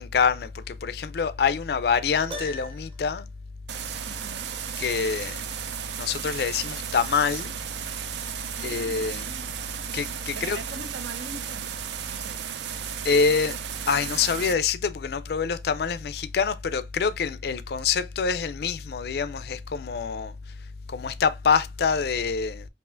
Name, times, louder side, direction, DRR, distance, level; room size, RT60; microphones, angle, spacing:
voice 1, 0.0-3.3 4.8-5.4 6.0-7.6 8.6-9.2 9.9-10.6 13.0-13.6 13.9-20.3 20.9-22.6, left 5 dB, 60° left, 0.4 m, -26 dB
Piano, 2.3-3.1, equal, 30° right, 0.9 m, -38 dB
sound 1, 3.7-14.5, right 9 dB, 75° right, 0.4 m, -35 dB
voice 2, 4.1-4.5 8.5-9.5 10.3-11.8 12.1-12.4, right 3 dB, 90° right, 0.8 m, -42 dB
5.4 x 2.5 x 2.4 m
head